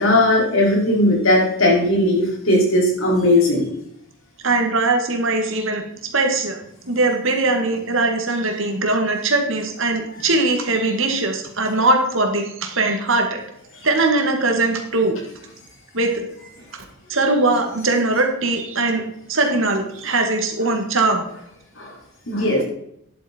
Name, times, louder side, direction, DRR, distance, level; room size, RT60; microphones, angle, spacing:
voice 1, 0.0-3.6 21.8-21.9 22.3-22.6, left 1 dB, 65° left, -3 dB, 5.0 m, -17 dB
voice 2, 4.4-5.8 6.1-6.6 6.9-13.4 13.8-15.2 15.9-16.3 17.1-19.0 19.3-21.2, right 2 dB, 65° right, 3 dB, 2.2 m, -20 dB
11.0 x 8.5 x 4.6 m, 0.72 s
head